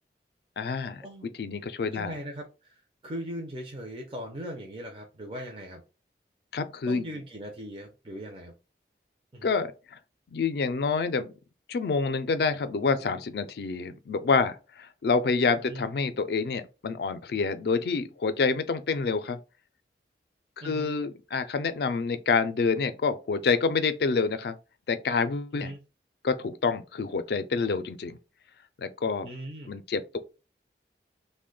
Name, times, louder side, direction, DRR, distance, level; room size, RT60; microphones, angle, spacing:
voice 1, 0.6-1.0 1.4-2.2 6.5-7.2 9.4-10.0 10.3-11.3 11.7-19.4 20.6-24.6 24.9-25.7 26.2-28.2 28.8-29.3 29.7-30.2, left 4 dB, 65° left, 0.4 m, -27 dB
voice 2, 1.9-5.8 6.9-8.5 9.3-9.5 15.6-15.8 20.6-21.0 25.5-25.8 29.2-29.7, equal, 30° right, 0.5 m, -39 dB
2.8 x 2.1 x 3.7 m
head